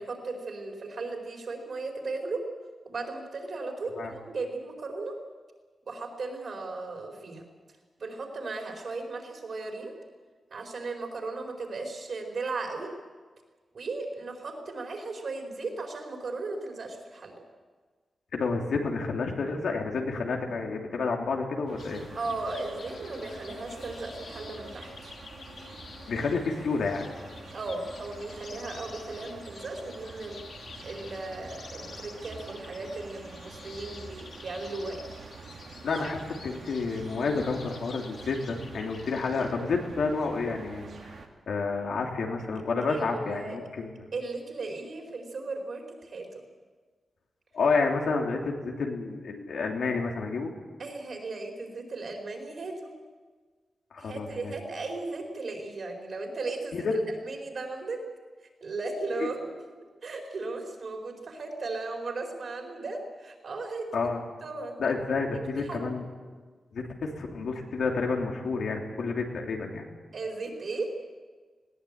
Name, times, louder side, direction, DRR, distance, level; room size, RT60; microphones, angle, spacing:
voice 1, 0.0-2.4 2.8-5.2 5.9-7.4 8.0-9.9 10.5-12.9 13.7-17.4 22.1-24.9 27.5-30.4 30.8-35.0 35.9-36.1 42.9-43.6 44.1-46.3 50.8-53.0 54.0-57.0 57.2-58.0 58.6-59.5 60.0-63.9 64.4-64.8 65.1-65.2 65.7-65.9 70.1-70.9, right 3 dB, 50° right, 2 dB, 4.6 m, -36 dB
voice 2, 18.3-22.1 26.1-27.1 35.8-41.1 41.5-44.1 47.5-50.5 53.9-54.5 56.7-56.9 63.9-64.2 64.8-66.0 66.7-69.8, left 4 dB, 80° left, 1 dB, 3.2 m, -30 dB
sound 1, 21.7-41.3, right 4 dB, 70° right, 2.4 m, -47 dB
sound 2, 21.8-39.5, left 4 dB, 60° left, 2.4 m, -49 dB
20.0 x 18.0 x 8.9 m, 1.4 s
wide cardioid pair, 165°, 0 cm